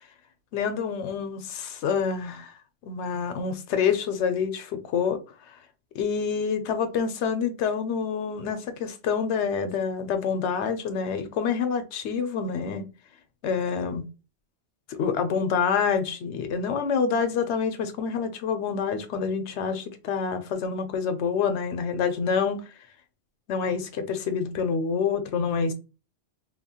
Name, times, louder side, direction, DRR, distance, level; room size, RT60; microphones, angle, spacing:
voice 1, 0.5-2.5 2.9-5.2 5.9-12.9 13.4-14.1 14.9-22.6 23.5-25.7, left 6 dB, 85° left, 0.9 m, -27 dB
2.9 x 2.1 x 2.7 m
omnidirectional pair, 1.1 m